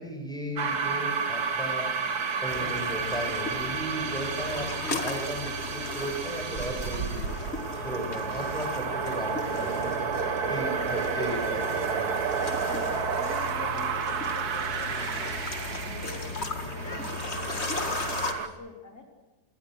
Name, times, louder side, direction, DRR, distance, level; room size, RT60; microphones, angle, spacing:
voice 1, 0.0-1.9 2.4-7.2 7.7-9.9 10.5-12.4, equal, ahead, 2 dB, 6.7 m, -35 dB
sound 1, 0.6-18.5, right 6 dB, 75° right, 1.8 m, -31 dB
sound 2, 2.5-18.3, left 4 dB, 45° left, 2.1 m, -36 dB
voice 2, 9.7-10.2 10.5-11.3 12.6-15.3 15.7-19.0, left 3 dB, 75° left, 1 dB, 4.2 m, -45 dB
27.5 x 21.5 x 6.5 m, 1.1 s
omnidirectional pair, 1.7 m